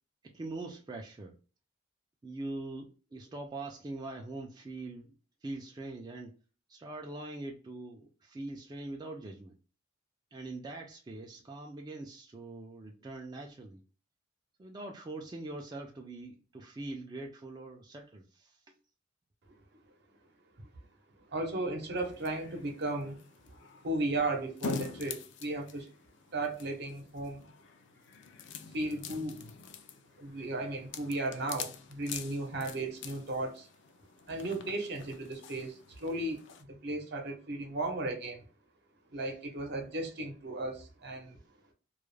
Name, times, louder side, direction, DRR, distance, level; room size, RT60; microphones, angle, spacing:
voice 1, 0.2-1.3 2.2-5.1 5.4-6.3 6.7-9.6 10.3-13.8 14.6-18.8, right 2 dB, 20° right, 0.3 m, -43 dB
voice 2, 21.3-23.2 23.8-25.9 26.3-27.5 28.7-29.4 30.2-33.7 34.3-38.4 39.1-41.4, right 2 dB, 60° right, 0.7 m, -35 dB
sound 1, 22.0-36.6, left 5 dB, 65° left, 0.4 m, -45 dB
2.3 x 2.1 x 3.0 m
head